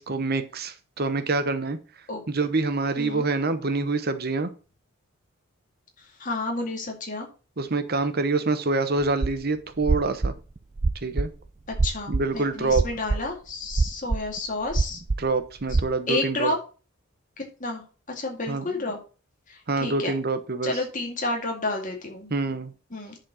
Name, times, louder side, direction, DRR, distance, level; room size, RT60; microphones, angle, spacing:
voice 1, 0.0-1.8 2.3-4.5 7.6-10.3 11.0-11.3 12.1-12.8 15.2-16.5 18.5-18.6 19.7-20.7 22.3-22.7, right 3 dB, 45° right, 11 dB, 1.0 m, -26 dB
voice 2, 3.0-3.3 6.2-7.3 11.7-15.0 15.7-15.8 16.1-16.6 17.4-19.0 19.5-20.1 20.6-22.3 22.9-23.2, left 2 dB, 40° left, 2 dB, 2.2 m, -31 dB
sound 1, 9.0-9.4 9.8-11.3 11.7-12.3 12.7-13.2 13.7-14.4 14.7-15.3 15.6-15.8, right 3 dB, 30° right, 0.4 m, -24 dB
10.5 x 4.3 x 6.2 m, 0.36 s
head